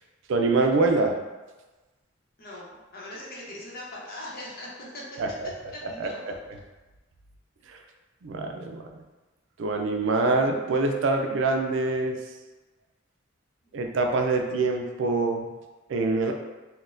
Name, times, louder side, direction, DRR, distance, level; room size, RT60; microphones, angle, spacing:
voice 1, 0.3-1.1 5.2-5.5 6.0-6.3 7.7-7.8 8.2-8.8 9.6-12.2 13.7-15.5 15.9-16.3, right 3 dB, 70° right, 3 dB, 0.4 m, -25 dB
voice 2, 2.4-5.2 5.7-6.2 13.7-13.8, left 1 dB, 50° left, -5 dB, 0.8 m, -40 dB
4.0 x 2.1 x 2.5 m, 1.2 s
head